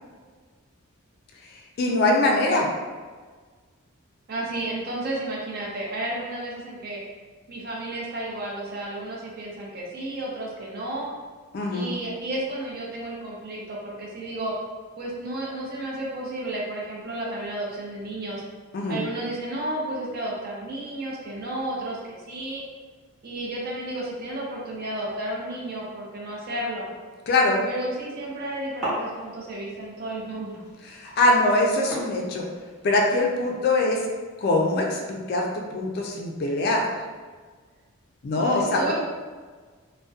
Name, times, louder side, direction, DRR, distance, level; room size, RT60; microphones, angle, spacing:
voice 1, 1.8-2.7 11.5-11.9 18.7-19.0 27.3-27.6 30.9-32.4 32.8-34.0 34.4-36.9 38.2-38.9, left 2 dB, 45° left, 0 dB, 0.3 m, -22 dB
voice 2, 4.3-7.0 7.5-11.1 11.7-14.5 15.0-18.4 18.9-22.6 23.2-26.9 27.6-30.6 31.2-31.3 38.4-38.9, right 1 dB, 45° right, -3 dB, 0.5 m, -32 dB
sound 1, 28.2-33.5, equal, ahead, 0.9 m, -38 dB
2.6 x 2.1 x 2.3 m, 1.4 s
head